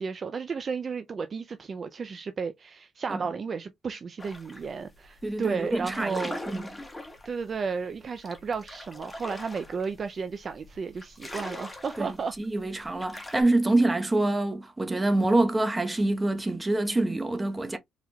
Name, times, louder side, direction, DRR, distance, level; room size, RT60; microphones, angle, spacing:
voice 1, 0.0-6.4 7.2-12.3 13.1-13.3, right 5 dB, 45° right, 0.4 m, -33 dB
sound 1, 4.2-4.7 5.0-5.3 5.6-13.4, left 1 dB, 15° left, 1.5 m, -41 dB
voice 2, 5.2-6.7 12.0-17.8, right 2 dB, 15° right, 0.9 m, -26 dB
4.3 x 3.9 x 2.3 m
cardioid pair, 90°, 0 cm